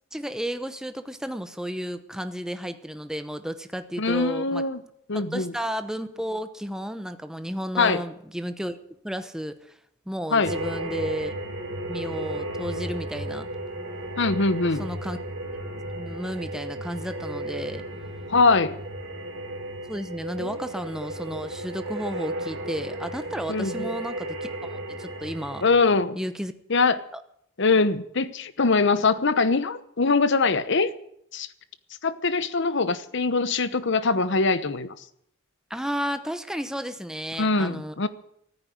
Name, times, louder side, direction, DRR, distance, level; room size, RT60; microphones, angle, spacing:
voice 1, 0.1-4.6 5.1-8.8 9.0-9.8 10.1-11.3 11.9-13.5 14.8-15.2 15.9-17.8 19.9-24.7 25.0-25.6 26.2-26.5 35.7-37.9, equal, 5° right, 9 dB, 0.9 m, -33 dB
voice 2, 4.0-4.8 5.1-5.5 7.8-8.0 10.3-10.5 14.2-14.8 18.3-18.8 20.4-20.5 23.5-23.9 25.6-26.2 26.7-27.0 27.6-30.9 31.3-31.5 32.0-34.9 37.4-38.1, left 3 dB, 60° left, 14 dB, 1.0 m, -22 dB
sound 1, 10.4-25.9, right 1 dB, 65° right, 3.1 m, -34 dB
14.0 x 9.6 x 9.7 m, 0.70 s
head